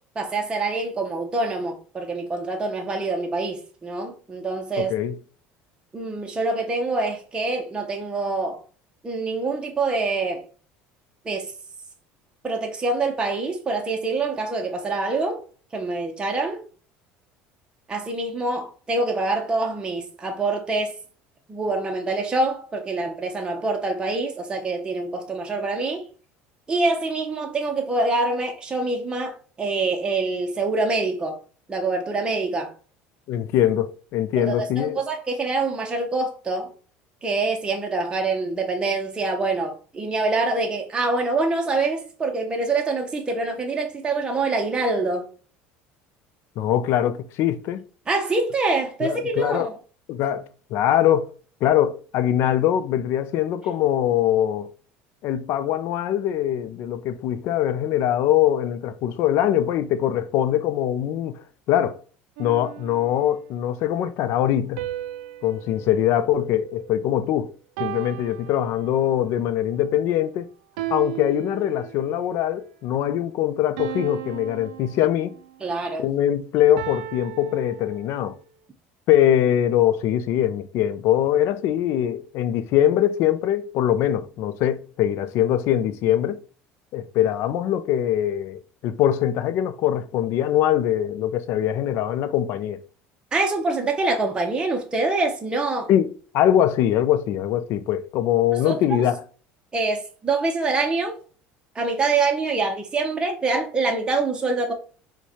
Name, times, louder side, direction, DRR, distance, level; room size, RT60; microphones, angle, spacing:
voice 1, 0.2-4.9 5.9-8.6 9.0-10.4 11.2-11.5 12.4-15.4 15.7-16.6 17.9-21.0 21.5-26.1 26.7-31.4 31.7-32.7 34.3-36.7 37.2-45.3 48.1-49.8 75.6-76.0 93.3-95.9 98.7-99.0 99.7-101.2 101.8-104.7, right 3 dB, 20° right, 0.6 m, -25 dB
voice 2, 4.8-5.2 33.3-35.0 46.6-47.8 49.0-49.7 50.1-50.4 50.7-51.3 51.6-54.7 55.2-62.0 62.4-64.9 65.4-67.5 67.8-70.5 70.9-75.3 76.0-78.4 79.1-86.4 86.9-92.8 95.9-99.2, left 11 dB, 60° left, 0.4 m, -22 dB
sound 1, 62.4-63.6 64.8-67.2 67.8-69.3 70.8-72.2 73.8-75.6 76.8-78.4, right 12 dB, 90° right, 0.4 m, -36 dB
4.6 x 2.2 x 2.8 m
supercardioid pair, 110°, 5 cm